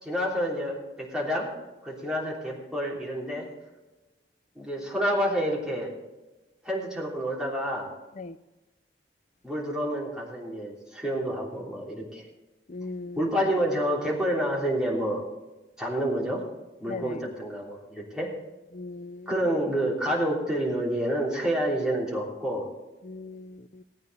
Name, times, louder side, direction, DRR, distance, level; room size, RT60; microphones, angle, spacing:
voice 1, 0.0-1.5 1.8-3.5 4.5-5.9 6.6-7.9 9.4-12.2 13.2-15.2 15.8-16.4 16.8-18.3 19.3-22.6, equal, 5° right, 3.2 m, -28 dB
voice 2, 12.7-13.2 16.9-17.2 18.7-19.3 23.0-23.8, left 3 dB, 40° left, 0.5 m, -38 dB
18.0 x 9.1 x 4.1 m
head